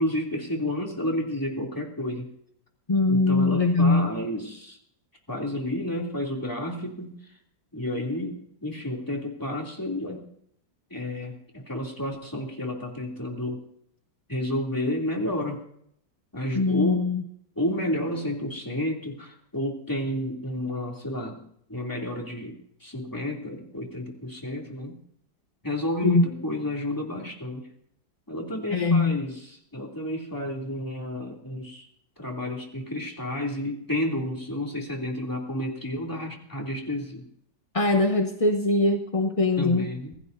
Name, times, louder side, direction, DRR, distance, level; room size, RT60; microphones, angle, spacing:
voice 1, 0.0-2.3 3.1-4.8 5.3-7.1 7.7-10.2 10.9-13.6 14.3-15.6 16.3-17.0 17.6-21.4 21.7-25.0 25.6-27.7 28.3-31.9 32.2-37.3 39.6-40.2, left 1 dB, 10° left, -1 dB, 2.9 m, -31 dB
voice 2, 2.9-4.1 16.5-17.2 26.0-26.3 28.7-29.2 37.7-39.9, left 3 dB, 30° left, 5 dB, 0.7 m, -22 dB
26.0 x 16.5 x 2.7 m, 0.68 s
omnidirectional pair, 1.8 m